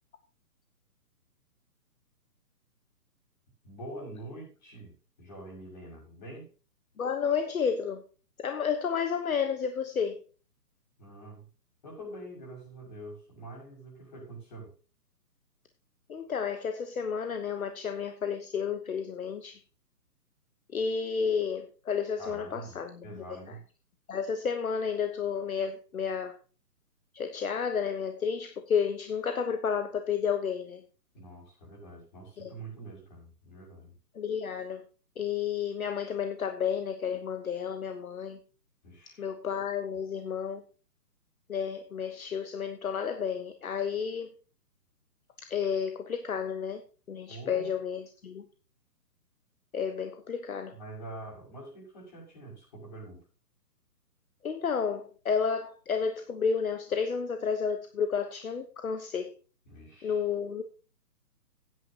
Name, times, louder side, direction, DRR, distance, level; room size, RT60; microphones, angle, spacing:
voice 1, 3.6-6.5 11.0-11.5 11.8-14.7 22.2-23.6 31.1-33.9 38.8-39.3 47.3-47.7 50.7-53.2 59.7-60.2, right 2 dB, 30° left, -4 dB, 6.4 m, -45 dB
voice 2, 7.0-8.0 8.4-10.2 16.1-19.6 20.7-22.9 24.1-26.3 27.1-30.8 32.4-32.5 34.1-34.8 35.2-38.4 39.2-40.6 41.5-44.3 45.5-46.8 47.1-48.4 49.7-50.8 54.4-59.3 60.0-60.6, left 6 dB, 60° left, 7 dB, 1.3 m, -31 dB
15.0 x 9.7 x 2.9 m, 0.35 s
hypercardioid pair, 180°, 48 cm